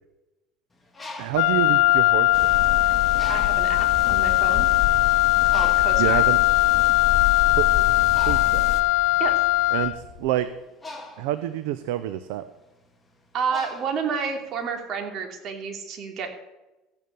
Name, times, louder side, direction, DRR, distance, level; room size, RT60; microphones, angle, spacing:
Bird, 0.7-2.6 3.1-3.8 4.5-4.7 4.9-14.6, left 2 dB, 15° left, 2.2 m, -43 dB
voice 1, 1.2-2.5 6.0-6.4 7.6-7.9 8.3-8.7 9.7-9.9 10.2-10.5 11.2-12.4, right 13 dB, 85° right, 11 dB, 0.7 m, -27 dB
Wind instrument woodwind instrument, 1.3-10.1, left 19 dB, 75° left, 0.7 m, -20 dB
sound 1, 2.3-8.8, left 8 dB, 50° left, 1.8 m, -30 dB
voice 2, 3.3-4.7 5.4-6.2 9.2-9.3 13.3-16.3, right 6 dB, 45° right, 4 dB, 3.1 m, -30 dB
15.0 x 9.4 x 7.0 m, 1.0 s
cardioid pair, 125°, 0 cm